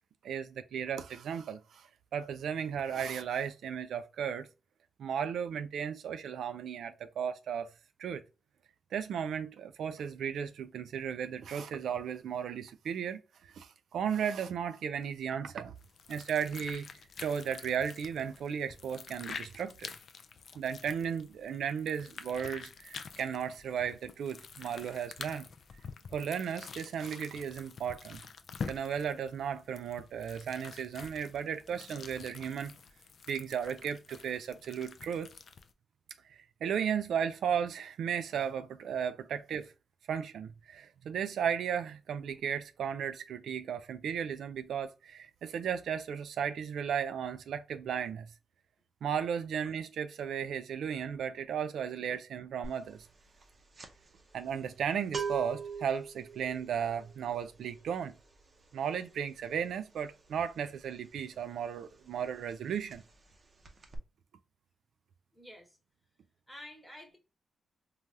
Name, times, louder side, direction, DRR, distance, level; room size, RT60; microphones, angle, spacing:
voice 1, 0.2-4.5 5.0-7.7 8.0-8.2 8.9-15.7 16.1-16.9 17.2-19.9 20.5-25.4 26.1-28.2 28.7-32.7 33.3-35.3 36.6-39.7 40.1-48.3 49.0-53.1 54.3-58.1 58.7-63.0, right 8 dB, 85° right, 0.3 m, -35 dB
sound 1, 15.8-35.7, left 5 dB, 60° left, 0.3 m, -47 dB
voice 2, 51.8-52.2 65.3-65.8 66.5-67.2, equal, ahead, 1.1 m, -51 dB
sound 2, 52.6-52.9 53.2-61.7 62.0-62.2 62.5-63.3 63.6-64.0, right 5 dB, 40° right, 0.6 m, -42 dB
3.2 x 2.3 x 2.6 m
cardioid pair, 85°, 0 cm